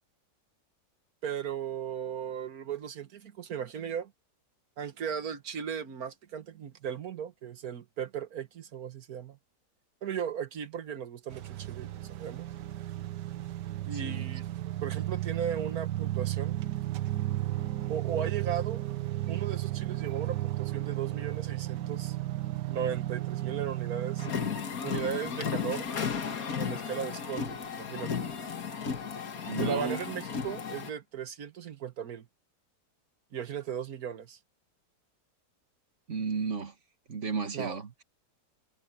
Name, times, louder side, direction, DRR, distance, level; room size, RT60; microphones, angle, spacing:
voice 1, 1.2-4.1 4.8-9.4 10.0-12.5 13.9-14.5 14.8-16.6 17.9-18.9 19.3-22.2 22.7-24.3 24.8-25.9 26.6-28.3 29.6-32.3 33.3-34.4 37.5-37.8, right 8 dB, 60° right, 1.7 m, -36 dB
sound 1, 11.3-24.3, right 15 dB, 90° right, 1.5 m, -34 dB
voice 2, 13.9-14.3 29.5-30.0 36.1-36.7 37.1-38.0, right 5 dB, 45° right, 2.1 m, -34 dB
sound 2, 24.2-30.9, left 6 dB, 60° left, 2.1 m, -34 dB
omnidirectional pair, 1.8 m